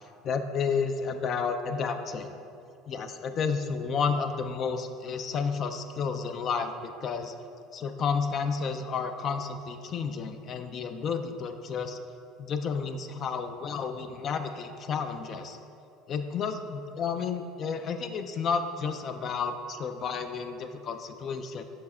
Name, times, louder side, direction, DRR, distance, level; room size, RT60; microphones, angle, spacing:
voice 1, 0.2-2.3 2.9-7.3 7.7-12.0 12.4-15.6 16.1-21.6, left 5 dB, 40° left, 8 dB, 0.4 m, -31 dB
6.0 x 4.6 x 4.2 m, 2.5 s
cardioid pair, 125°, 0 cm